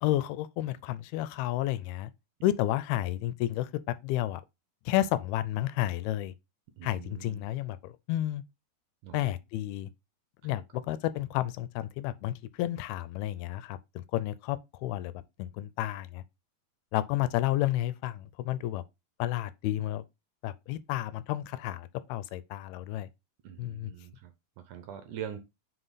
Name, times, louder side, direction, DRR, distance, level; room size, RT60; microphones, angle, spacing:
voice 1, 0.0-2.1 2.4-4.4 4.9-6.3 6.8-8.4 9.1-9.9 10.4-16.2 16.9-18.8 19.2-20.0 20.4-23.1 23.6-23.9, left 14 dB, 85° left, 2.5 m, -31 dB
voice 2, 6.8-7.4 9.0-9.2 10.4-10.6 23.4-24.3 24.7-25.4, right 9 dB, 75° right, 1.9 m, -43 dB
5.9 x 5.1 x 4.0 m
omnidirectional pair, 4.4 m